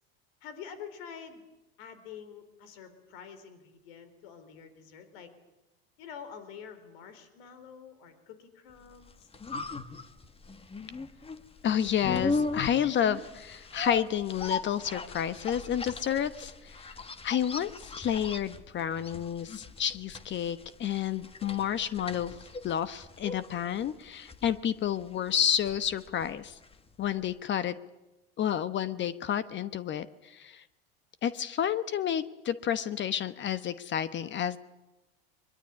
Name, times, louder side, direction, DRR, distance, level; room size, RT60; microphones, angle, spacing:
voice 1, 0.4-1.4 1.8-5.3 6.0-9.3, left 7 dB, 75° left, 11 dB, 3.9 m, -47 dB
sound 1, 8.9-27.0 27.2-27.3, left 3 dB, 20° left, 1.6 m, -38 dB
voice 2, 11.6-17.0 17.2-22.3 22.6-26.6 27.0-27.8 28.4-30.6 31.2-34.6, left 9 dB, 40° left, 14 dB, 1.0 m, -30 dB
22.5 x 22.0 x 9.7 m, 1.0 s
hypercardioid pair, 95°, 30 cm